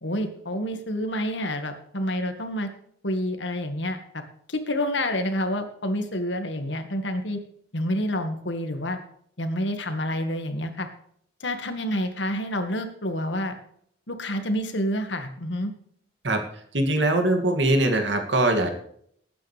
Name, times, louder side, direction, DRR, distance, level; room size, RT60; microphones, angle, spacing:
voice 1, 0.0-2.7 3.0-4.0 4.5-7.4 7.7-9.0 9.4-10.9 11.4-13.5 14.1-15.7, equal, 75° left, 7 dB, 1.9 m, -28 dB
voice 2, 16.7-18.7, right 1 dB, 75° right, 5 dB, 2.6 m, -22 dB
19.0 x 9.3 x 3.5 m, 0.65 s
head